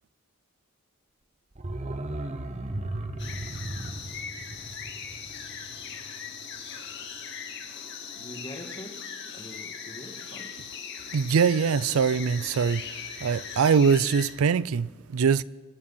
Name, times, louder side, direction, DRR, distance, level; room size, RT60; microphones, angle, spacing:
sound 1, 1.5-6.3 6.6-6.7, right 1 dB, 30° right, 0.9 m, -36 dB
sound 2, 3.2-14.3, left 6 dB, 55° left, 2.0 m, -39 dB
voice 1, 8.1-9.0 9.3-10.5, equal, 25° left, 1.8 m, -43 dB
voice 2, 11.1-12.9 13.2-15.4, right 6 dB, 80° right, 0.4 m, -23 dB
27.0 x 9.3 x 5.6 m
head